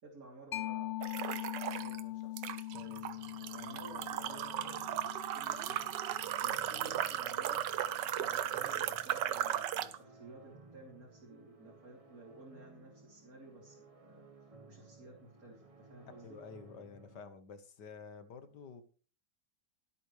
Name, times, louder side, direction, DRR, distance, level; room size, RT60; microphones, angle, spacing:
voice 1, 0.0-4.8 5.0-7.6 8.2-14.3 14.7-16.4, right 2 dB, 55° right, -4 dB, 3.5 m, -55 dB
Mallet percussion, 0.5-7.8, left 15 dB, 55° left, 0.5 m, -43 dB
sound 1, 1.0-2.0 2.4-10.0, right 11 dB, 85° right, 1.4 m, -36 dB
sound 2, 2.7-17.2, right 3 dB, 25° right, 1.2 m, -58 dB
voice 2, 16.2-18.8, left 5 dB, 75° left, 10 dB, 2.0 m, -50 dB
22.0 x 8.5 x 3.2 m, 0.39 s
omnidirectional pair, 1.8 m